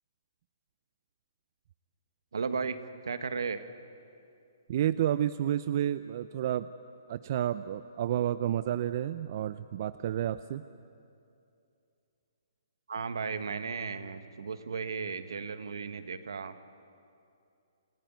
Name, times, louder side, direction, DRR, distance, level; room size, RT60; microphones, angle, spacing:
voice 1, 2.3-2.8 3.0-3.6 12.9-16.5, right 5 dB, 80° right, 9 dB, 1.6 m, -35 dB
voice 2, 4.7-6.7 7.1-10.6, right 11 dB, 45° right, 13 dB, 0.5 m, -30 dB
28.5 x 16.0 x 9.2 m, 2.6 s
hypercardioid pair, 145°, 2 cm